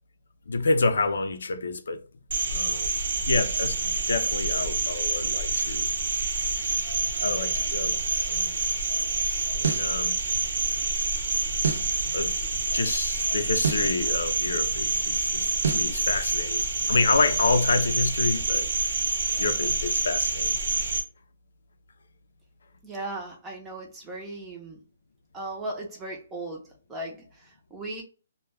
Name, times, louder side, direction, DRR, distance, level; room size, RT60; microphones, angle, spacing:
voice 1, 0.5-2.0 2.5-3.0 3.3-5.9 7.2-8.0 8.3-8.6 9.5-10.2 12.0-12.4 12.7-16.6 16.9-18.7 19.4-20.5, left 3 dB, 85° left, 0.4 m, -28 dB
Cricket, 2.3-21.0, right 3 dB, 60° right, 0.9 m, -27 dB
sound 1, 9.6-9.9 11.6-11.9 13.6-13.9 15.6-15.9, right 6 dB, 80° right, 0.5 m, -27 dB
voice 2, 22.8-24.8 25.3-26.6 26.9-28.0, right 2 dB, 10° right, 0.6 m, -37 dB
2.2 x 2.2 x 3.3 m
hypercardioid pair, 165°, 0 cm